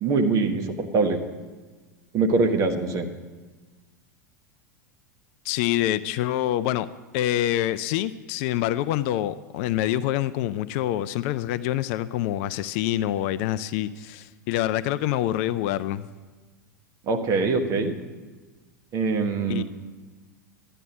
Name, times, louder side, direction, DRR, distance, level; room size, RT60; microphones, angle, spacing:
voice 1, 0.0-1.2 2.1-3.0 17.1-17.9 18.9-19.6, right 4 dB, 35° right, 6 dB, 1.2 m, -23 dB
voice 2, 5.4-6.9 7.1-16.1 19.5-19.6, left 13 dB, 45° left, 15 dB, 0.4 m, -26 dB
12.5 x 9.0 x 6.1 m, 1.3 s
figure-of-eight pair, 85°, 10 cm